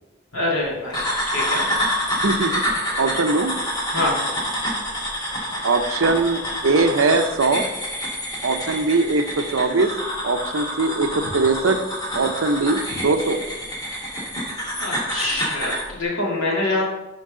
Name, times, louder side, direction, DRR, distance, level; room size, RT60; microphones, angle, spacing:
voice 1, 0.3-1.6 3.9-4.2 14.8-16.8, left 2 dB, 80° left, -4 dB, 2.8 m, -25 dB
sound 1, 0.9-15.9, equal, 20° left, 1.9 m, -27 dB
voice 2, 2.2-2.6 3.0-3.5 5.6-7.7 8.4-9.9 10.2-11.8 12.1-13.4, right 3 dB, 75° right, 8 dB, 0.7 m, -21 dB
11.5 x 4.6 x 3.8 m, 1.1 s
head